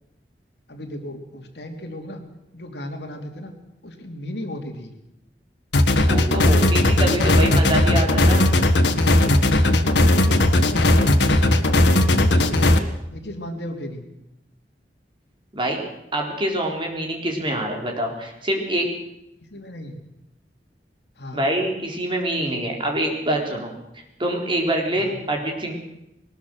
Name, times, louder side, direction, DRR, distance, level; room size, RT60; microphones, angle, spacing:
voice 1, 0.7-2.2 2.5-3.5 3.8-4.9 9.5-11.1 11.5-12.8 13.1-14.0 19.5-20.0 21.2-21.5 22.4-22.7 24.9-25.2, left 1 dB, 65° left, 4 dB, 3.0 m, -35 dB
sound 1, 5.7-12.8, left 1 dB, 90° left, 1.6 m, -17 dB
voice 2, 6.0-8.5 15.5-15.8 16.1-18.9 21.3-23.7 24.2-25.7, right 1 dB, 30° right, 1 dB, 4.1 m, -25 dB
21.5 x 20.0 x 6.4 m, 0.88 s
head